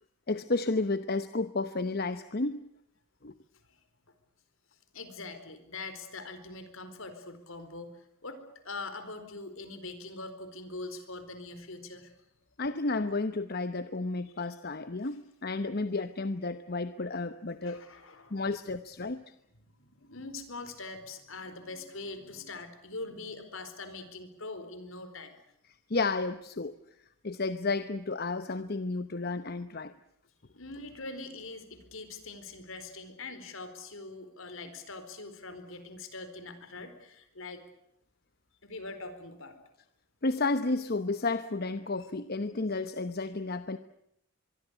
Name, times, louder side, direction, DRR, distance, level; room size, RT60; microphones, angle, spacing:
voice 1, 0.3-2.6 3.2-3.3 12.6-17.8 18.3-19.2 25.9-26.7 27.2-29.9 40.2-43.8, left 3 dB, 45° left, 12 dB, 0.9 m, -32 dB
voice 2, 4.9-8.4 8.6-12.1 14.4-14.5 17.6-18.5 19.6-25.4 30.4-37.6 38.6-39.6, left 3 dB, 70° left, 10 dB, 4.4 m, -43 dB
24.0 x 23.5 x 8.2 m, 0.79 s
head